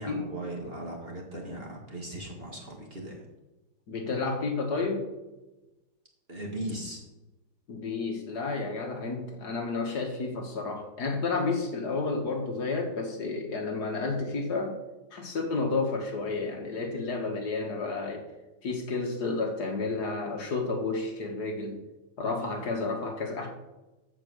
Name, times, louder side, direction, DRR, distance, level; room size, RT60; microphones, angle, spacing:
voice 1, 0.0-3.3 6.3-7.0, right 1 dB, 30° right, 0 dB, 1.8 m, -38 dB
voice 2, 3.9-5.1 7.7-14.8 15.1-18.3 18.6-21.8 22.2-23.5, left 3 dB, 55° left, 3 dB, 1.9 m, -31 dB
14.5 x 5.0 x 6.4 m, 1.1 s
omnidirectional pair, 2.2 m